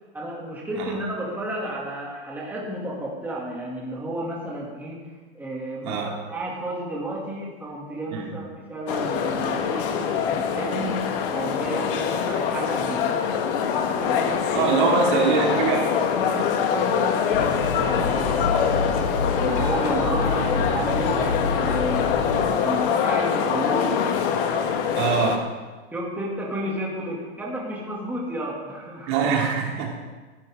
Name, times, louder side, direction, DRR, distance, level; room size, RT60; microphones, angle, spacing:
voice 1, 0.1-5.0 5.3-11.0 11.3-13.1 13.9-15.8 16.1-18.9 19.4-22.3 22.6-24.3 25.9-29.1, right 1 dB, 5° right, -4 dB, 2.5 m, -32 dB
sound 1, 8.9-25.4, left 7 dB, 55° left, 1.6 m, -24 dB
voice 2, 14.5-15.9 25.0-25.5 29.1-29.9, right 5 dB, 45° right, -1 dB, 2.7 m, -23 dB
sound 2, 17.3-22.4, left 4 dB, 85° left, 3.2 m, -28 dB
15.5 x 11.5 x 3.7 m, 1.3 s
supercardioid pair, 145°, 32 cm